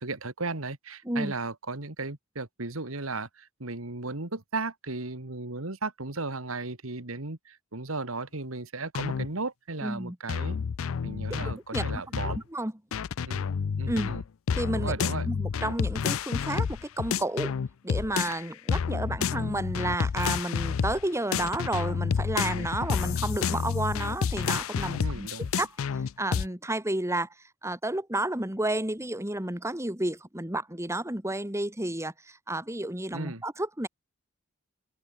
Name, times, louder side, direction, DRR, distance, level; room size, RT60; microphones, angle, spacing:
voice 1, 0.0-10.6 11.0-12.4 13.2-13.4 13.8-14.2 14.7-15.3 24.9-25.5 33.1-33.4, right 3 dB, 85° right, 2.2 m, -35 dB
voice 2, 1.0-1.3 9.8-10.2 11.3-12.7 13.9-14.1 14.5-15.0 15.2-17.5 17.8-25.3 25.6-25.8 26.2-27.3 27.6-33.9, right 1 dB, 15° right, 2.9 m, -31 dB
sound 1, 9.0-9.3 10.3-12.4 12.9-18.4 18.7-21.0 21.3-26.5, left 6 dB, 75° left, 0.4 m, -29 dB
head